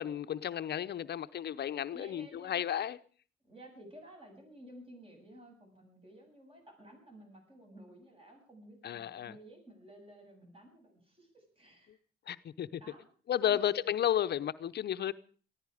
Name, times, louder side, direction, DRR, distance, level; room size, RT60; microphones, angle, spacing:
voice 1, 0.0-3.0 8.8-9.3 12.3-12.8 13.3-15.1, left 10 dB, 55° left, 0.7 m, -33 dB
voice 2, 1.9-2.6 3.4-12.0 12.8-13.1 13.4-13.6, right 1 dB, 30° right, 7.8 m, -54 dB
19.0 x 14.5 x 4.9 m
cardioid pair, 90°, 20 cm